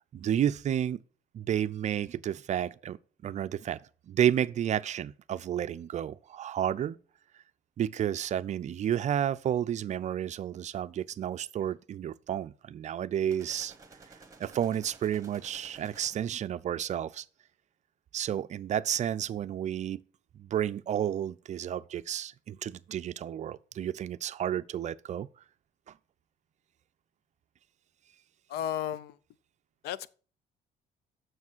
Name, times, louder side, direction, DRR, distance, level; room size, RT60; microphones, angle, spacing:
voice 1, 0.1-1.0 1.3-3.0 3.2-3.8 4.1-7.0 7.8-13.7 14.4-17.3 18.1-20.0 20.4-25.3, right 10 dB, 45° right, 0.5 m, -31 dB
sound 1, 13.3-16.5, right 4 dB, 20° right, 1.4 m, -54 dB
voice 2, 28.5-29.2 29.8-30.1, left 10 dB, 75° left, 0.6 m, -33 dB
7.3 x 6.3 x 6.2 m
cardioid pair, 110°, 17 cm